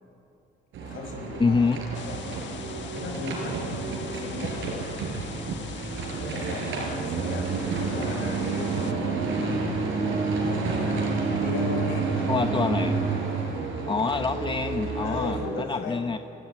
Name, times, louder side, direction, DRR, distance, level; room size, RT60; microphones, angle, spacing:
sound 1, 0.7-15.4, right 4 dB, 85° right, 5.8 m, -29 dB
voice 1, 0.8-2.4 2.9-4.9 6.2-9.6 10.5-12.3 13.9-14.3 14.7-16.2, left 3 dB, 80° left, 2 dB, 5.7 m, -38 dB
voice 2, 1.4-1.8 12.3-13.0 13.9-16.2, left 4 dB, 25° left, 8 dB, 0.9 m, -26 dB
sound 2, 1.9-8.9, left 8 dB, 65° left, 1.5 m, -41 dB
30.0 x 16.0 x 9.0 m, 2.6 s
cardioid pair, 90°, 20 cm